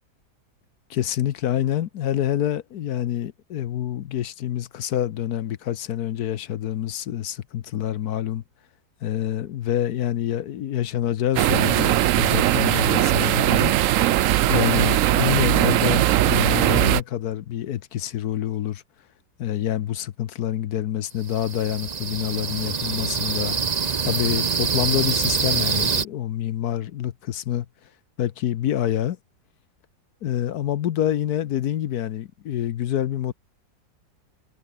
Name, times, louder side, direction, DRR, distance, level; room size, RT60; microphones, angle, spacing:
voice 1, 0.9-8.4 9.0-13.7 14.5-18.8 19.4-23.5 24.0-27.7 28.2-29.2 30.2-33.3, left 11 dB, 60° left, 1.2 m, -27 dB
sound 1, 11.4-17.0, right 13 dB, 85° right, 0.7 m, -19 dB
sound 2, 21.3-26.0, right 5 dB, 40° right, 0.5 m, -25 dB
omnidirectional pair, 2.0 m